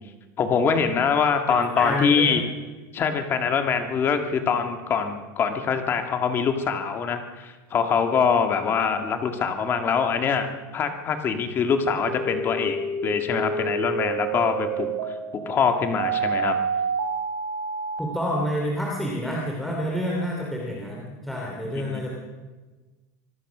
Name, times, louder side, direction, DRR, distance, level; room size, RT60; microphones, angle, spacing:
voice 1, 0.4-2.4 2.9-10.5 10.7-12.8 13.0-14.9 15.3-16.6 21.8-22.0, left 6 dB, 25° left, 6 dB, 1.9 m, -24 dB
voice 2, 1.5-2.4 18.0-22.1, equal, ahead, -2 dB, 2.9 m, -28 dB
sound 1, 12.0-18.0, right 3 dB, 50° right, 4.0 m, -28 dB
25.5 x 19.0 x 6.2 m, 1.3 s
supercardioid pair, 170°, 10 cm